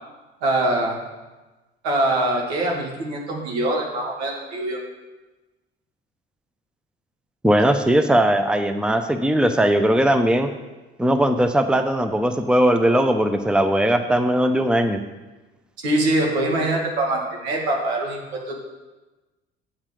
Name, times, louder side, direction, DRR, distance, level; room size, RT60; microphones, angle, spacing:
voice 1, 0.4-1.0 1.8-4.8 15.8-18.6, right 1 dB, 80° right, 0 dB, 2.1 m, -23 dB
voice 2, 7.4-10.5 11.0-15.0, right 1 dB, 5° right, 8 dB, 0.8 m, -19 dB
8.6 x 7.3 x 5.0 m, 1.2 s
hypercardioid pair, 55°, 32 cm